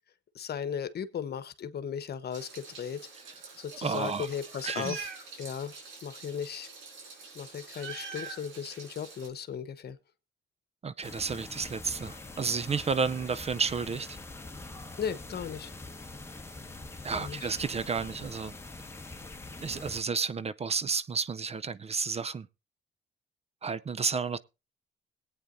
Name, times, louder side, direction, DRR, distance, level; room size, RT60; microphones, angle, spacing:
voice 1, 0.3-3.1 3.6-5.1 5.4-5.8 6.0-6.7 7.3-10.0 15.0-15.7 17.1-17.5, left 7 dB, 55° left, 1.1 m, -36 dB
Meow, 2.3-9.3, right 4 dB, 85° right, 4.9 m, -44 dB
voice 2, 3.8-4.3 4.6-4.9 10.8-14.2 17.0-18.5 19.6-22.5 23.6-24.4, right 5 dB, 30° right, 0.5 m, -31 dB
sound 1, 11.0-20.0, left 2 dB, 15° left, 1.5 m, -44 dB
21.0 x 8.8 x 2.6 m
cardioid pair, 90°, 20 cm